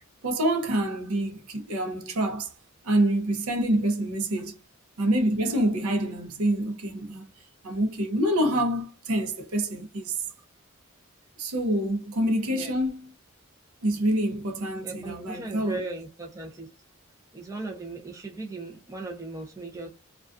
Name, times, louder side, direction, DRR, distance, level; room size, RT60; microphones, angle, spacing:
voice 1, 0.2-2.5 2.8-4.6 5.0-7.3 7.6-10.2 11.4-13.1 13.8-15.8, right 1 dB, 85° right, 0.6 m, -26 dB
voice 2, 14.8-16.7 17.3-19.9, right 2 dB, 15° right, 0.5 m, -37 dB
2.4 x 2.2 x 2.4 m
head